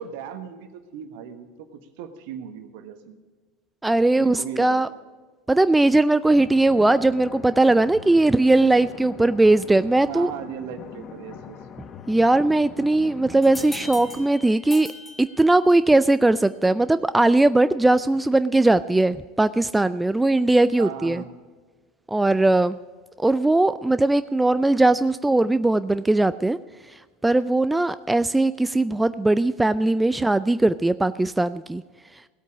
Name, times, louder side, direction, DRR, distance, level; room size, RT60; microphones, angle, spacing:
voice 1, 0.0-3.2 4.1-4.9 10.1-11.6 20.7-21.3, right 8 dB, 65° right, 8 dB, 1.4 m, -37 dB
voice 2, 3.8-4.9 5.5-10.3 12.1-14.9 15.2-21.2 22.1-22.8 23.2-26.6 27.2-31.8, right 2 dB, 10° right, 13 dB, 0.4 m, -19 dB
sound 1, 6.2-14.2, left 7 dB, 45° left, 1.1 m, -42 dB
sound 2, 13.4-16.0, left 3 dB, 25° left, 2.3 m, -41 dB
17.0 x 8.4 x 5.1 m, 1.4 s
hypercardioid pair, 80°, 0 cm